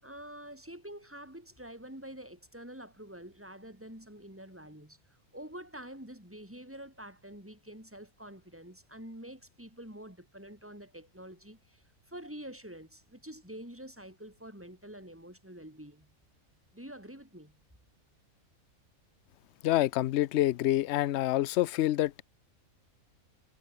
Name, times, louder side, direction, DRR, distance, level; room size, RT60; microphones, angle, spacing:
voice 1, 0.0-5.0 5.3-16.1 16.7-17.6, right 1 dB, 10° right, 6.1 m, -47 dB
voice 2, 19.6-22.2, left 14 dB, 65° left, 0.7 m, -27 dB
omnidirectional pair, 1.5 m